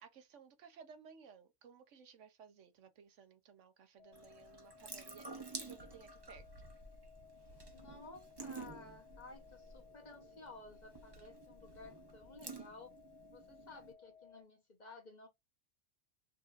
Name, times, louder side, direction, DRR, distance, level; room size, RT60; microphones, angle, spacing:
voice 1, 0.0-6.5, right 6 dB, 80° right, 1.1 m, -58 dB
sound 1, 4.0-14.4, left 6 dB, 75° left, 0.3 m, -61 dB
Water tap faucet / Sink (filling or washing) / Drip, 4.1-13.9, right 3 dB, 25° right, 0.7 m, -52 dB
voice 2, 7.7-12.9 13.3-15.3, left 3 dB, 40° left, 1.1 m, -55 dB
5.3 x 2.7 x 2.5 m
omnidirectional pair, 1.2 m